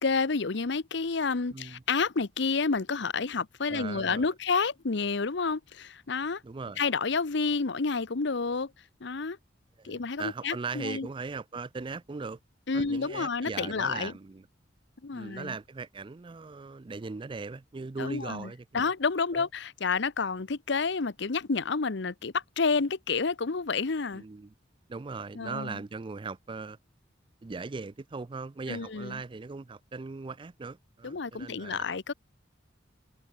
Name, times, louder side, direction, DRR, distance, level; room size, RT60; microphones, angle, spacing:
voice 1, 0.0-6.4 6.8-8.7 9.0-9.4 9.8-11.1 12.7-14.1 15.0-15.5 18.0-24.2 25.3-25.8 28.7-29.2 31.0-32.1, left 4 dB, 65° left, 0.9 m, -29 dB
voice 2, 1.5-1.8 3.7-4.3 6.4-6.8 9.8-12.4 12.7-14.5 15.1-18.9 19.3-19.5 24.1-24.5 24.9-26.8 27.4-31.8, right 4 dB, 25° right, 0.4 m, -39 dB
head